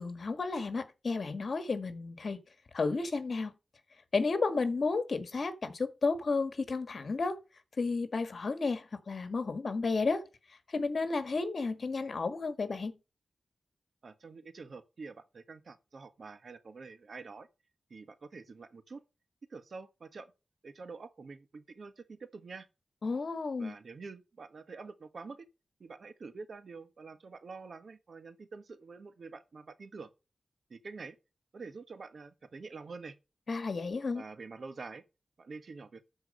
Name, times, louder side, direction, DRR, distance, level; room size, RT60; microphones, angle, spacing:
voice 1, 0.0-2.4 2.7-3.5 4.1-7.4 7.8-10.2 10.7-13.0 23.0-23.7 33.5-34.2, left 4 dB, 65° left, 1.7 m, -32 dB
voice 2, 14.0-17.5 17.9-19.0 19.5-20.3 20.6-22.7 23.6-25.5 25.8-30.1 30.7-31.2 31.5-33.2 34.1-35.0 35.4-36.0, right 4 dB, 70° right, 1.3 m, -47 dB
12.5 x 4.7 x 6.7 m
cardioid pair, 65°, 0 cm